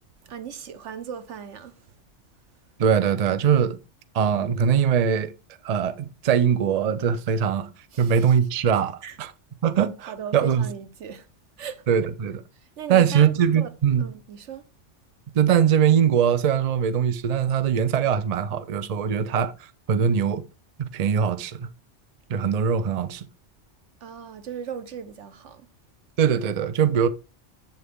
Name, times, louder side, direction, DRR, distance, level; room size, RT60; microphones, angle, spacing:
voice 1, 0.2-2.0 7.9-8.3 9.0-9.2 10.0-11.3 11.6-11.8 12.5-13.7 14.0-14.6 24.0-25.7, right 7 dB, 85° right, 1.2 m, -38 dB
voice 2, 2.8-3.8 4.1-5.3 5.6-7.7 8.0-9.3 9.6-10.6 11.9-12.4 12.9-14.0 15.3-19.5 19.9-20.4 20.8-21.7 22.3-23.3 26.2-27.1, right 8 dB, 45° right, 0.6 m, -21 dB
8.1 x 6.9 x 3.6 m
omnidirectional pair, 1.2 m